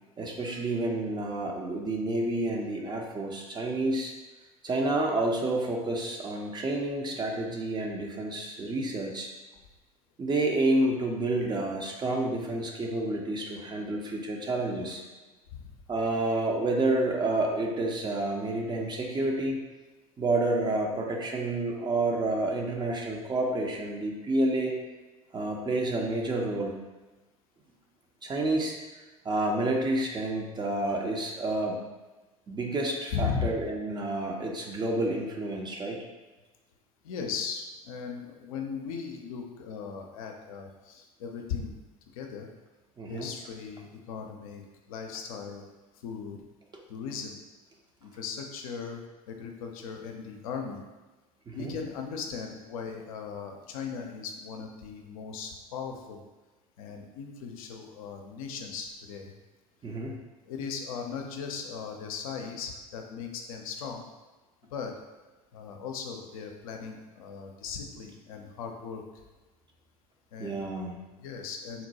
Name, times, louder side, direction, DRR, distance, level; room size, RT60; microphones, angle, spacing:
voice 1, 0.2-4.1 4.6-9.3 10.2-15.0 15.9-19.6 20.2-24.8 25.3-26.7 28.2-28.8 29.2-31.8 32.5-36.0 43.0-43.3 51.5-51.7 59.8-60.1 70.4-71.0, right 2 dB, 25° right, 0 dB, 0.5 m, -29 dB
voice 2, 33.1-33.5 37.0-41.8 42.1-42.5 43.1-45.6 45.9-46.4 46.9-47.4 48.0-50.8 51.5-56.2 56.8-59.3 60.4-64.1 64.7-65.0 65.5-69.0 70.3-70.6 71.2-71.9, left 6 dB, 70° left, 3 dB, 0.5 m, -38 dB
4.0 x 2.2 x 2.7 m, 1.2 s
hypercardioid pair, 70°, 19 cm